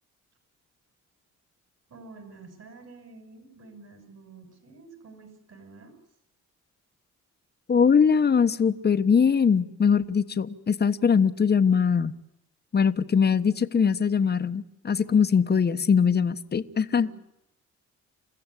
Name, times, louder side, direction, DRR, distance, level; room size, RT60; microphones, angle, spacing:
voice 1, 1.9-6.0 16.9-17.1, right 3 dB, 55° right, 7 dB, 6.4 m, -49 dB
voice 2, 7.7-12.1 12.7-17.1, left 6 dB, 35° left, 11 dB, 1.1 m, -22 dB
28.5 x 15.0 x 9.9 m, 0.84 s
cardioid pair, 90°, 30 cm